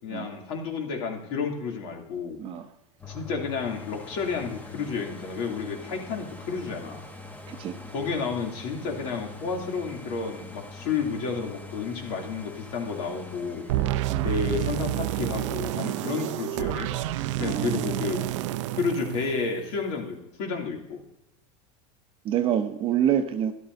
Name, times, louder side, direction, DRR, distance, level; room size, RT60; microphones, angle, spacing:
voice 1, 0.0-2.4 3.1-7.0 7.9-13.7 14.2-16.9 17.4-18.3 18.7-21.0, left 5 dB, 60° left, 1 dB, 2.7 m, -31 dB
sound 1, 3.0-16.7 17.2-17.3, left 3 dB, 10° left, 1.1 m, -44 dB
sound 2, 13.7-19.9, right 14 dB, 75° right, 0.6 m, -29 dB
voice 2, 17.3-17.8 22.2-23.5, right 10 dB, 35° right, 8 dB, 0.8 m, -27 dB
13.0 x 11.5 x 2.7 m, 0.90 s
supercardioid pair, 140°, 16 cm